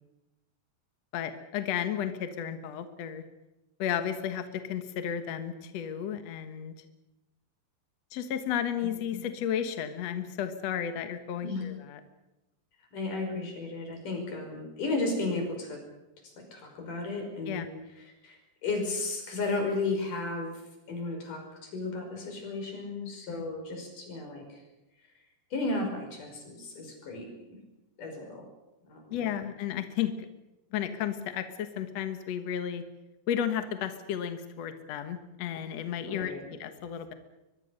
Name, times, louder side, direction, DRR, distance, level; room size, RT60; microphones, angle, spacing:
voice 1, 1.1-3.2 3.8-6.7 8.1-12.0 17.5-17.7 23.3-23.4 29.1-30.1 30.7-32.8 33.3-37.1, left 9 dB, 65° left, 8 dB, 1.7 m, -33 dB
voice 2, 12.9-15.8 16.4-17.7 18.0-20.6 20.9-24.6 25.5-27.3 28.0-28.5 28.9-29.2 36.0-36.4, left 3 dB, 50° left, 3 dB, 6.9 m, -34 dB
23.0 x 22.5 x 6.6 m, 0.98 s
omnidirectional pair, 4.8 m